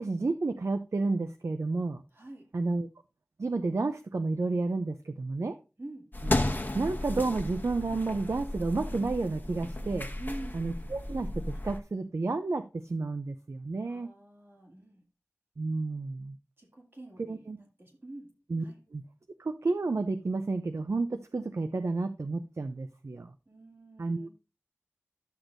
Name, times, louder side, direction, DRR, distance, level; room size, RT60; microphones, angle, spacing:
voice 1, 0.0-2.0 2.5-2.9 3.4-5.5 6.2-6.4 6.7-10.1 10.5-14.1 15.6-16.4 17.3-17.6 18.5-18.6 18.9-19.0 19.4-23.3 24.0-24.3, right 3 dB, 70° right, 9 dB, 0.5 m, -31 dB
voice 2, 2.1-2.5 5.8-6.1 10.2-10.6 13.8-15.0 16.6-18.3 18.6-18.8 23.5-24.3, right 1 dB, 50° right, 0 dB, 2.3 m, -46 dB
sound 1, 6.1-11.8, left 1 dB, 40° left, 1.1 m, -34 dB
11.5 x 6.2 x 2.6 m, 0.31 s
wide cardioid pair, 50°, 5 cm